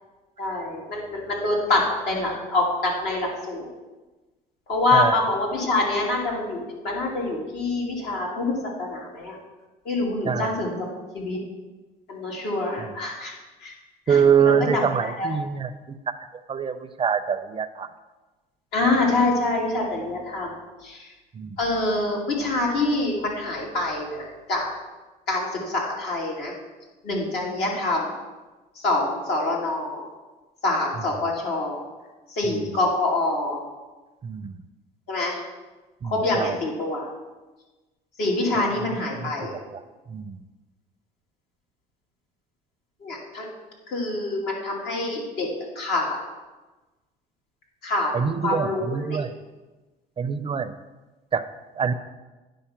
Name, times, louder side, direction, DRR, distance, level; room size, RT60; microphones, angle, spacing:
voice 1, 0.4-3.7 4.7-9.4 9.8-10.9 11.1-11.4 12.1-13.7 14.1-15.4 18.7-21.1 21.6-24.7 25.3-26.5 27.0-28.1 28.7-30.1 30.6-31.8 32.3-33.6 35.1-35.4 36.0-37.1 38.2-39.6 43.0-43.5 43.9-45.5 45.7-46.2 47.8-48.1 48.4-49.2, left 2 dB, 75° left, -2 dB, 2.8 m, -26 dB
voice 2, 4.9-5.2 10.2-10.5 12.8-12.9 14.1-15.7 16.1-16.2 16.5-17.9 21.3-21.6 32.5-32.7 34.2-34.6 36.0-36.6 38.5-38.7 39.2-39.8 40.1-40.4 48.1-49.3 50.2-50.7 51.3-51.4 51.8-51.9, right 7 dB, 30° right, 11 dB, 0.4 m, -24 dB
9.9 x 5.1 x 5.8 m, 1.2 s
cardioid pair, 110°, 17 cm